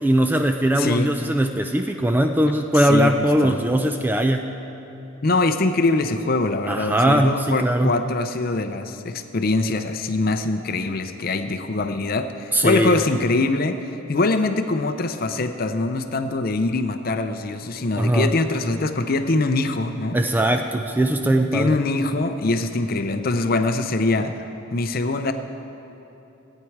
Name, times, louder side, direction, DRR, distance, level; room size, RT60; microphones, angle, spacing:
voice 1, 0.0-4.5 6.7-8.0 12.5-13.0 18.0-18.3 20.1-21.7, right 1 dB, 10° right, 5 dB, 0.3 m, -20 dB
voice 2, 0.8-1.1 2.7-3.1 3.4-3.6 5.2-20.2 21.5-24.3 24.7-25.3, left 2 dB, 45° left, 8 dB, 0.5 m, -23 dB
15.5 x 9.1 x 4.6 m, 2.9 s
head